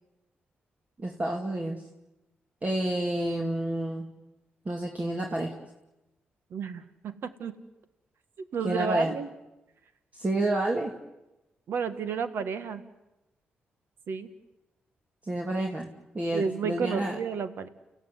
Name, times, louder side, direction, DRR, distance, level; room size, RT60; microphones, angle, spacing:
voice 1, 1.0-1.8 2.6-4.1 4.6-5.5 8.6-9.1 10.1-10.9 15.2-17.2, right 1 dB, 35° right, 0 dB, 2.8 m, -29 dB
voice 2, 6.5-7.6 8.4-9.3 11.7-12.8 14.1-14.3 16.3-17.7, right 6 dB, 75° right, 10 dB, 1.7 m, -32 dB
30.0 x 16.0 x 9.7 m, 1.0 s
supercardioid pair, 55°, 4 cm